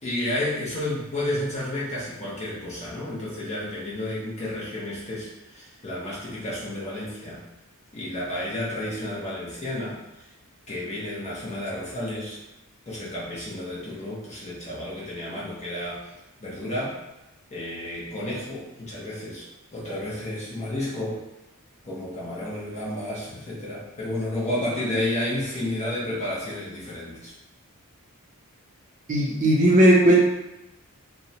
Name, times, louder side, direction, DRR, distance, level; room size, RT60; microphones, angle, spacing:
voice 1, 0.0-7.4 7.9-10.0 10.7-12.4 12.9-16.0 16.4-17.0 17.5-19.4 19.7-21.2 21.8-27.3, left 1 dB, 30° left, -7 dB, 0.6 m, -31 dB
voice 2, 29.1-30.2, right 1 dB, 35° right, -4 dB, 0.5 m, -17 dB
2.7 x 2.1 x 2.7 m, 0.94 s
head